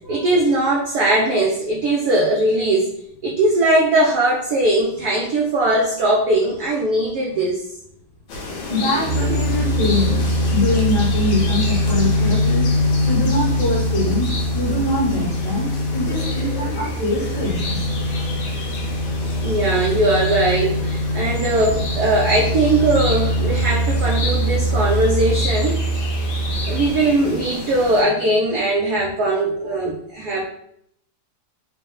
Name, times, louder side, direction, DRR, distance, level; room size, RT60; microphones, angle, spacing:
voice 1, 0.1-2.9 3.2-7.6 19.4-25.8 26.2-30.5, right 2 dB, 85° right, -2 dB, 0.8 m, -20 dB
sound 1, 8.3-28.0, left 3 dB, 70° left, 1.6 m, -31 dB
voice 2, 8.7-10.2 10.5-12.7 13.1-15.7 15.9-17.8, left 2 dB, 55° left, -5 dB, 1.7 m, -23 dB
sound 2, 9.1-26.9, equal, 65° right, 1.0 m, -22 dB
4.2 x 2.1 x 3.7 m, 0.71 s
omnidirectional pair, 2.3 m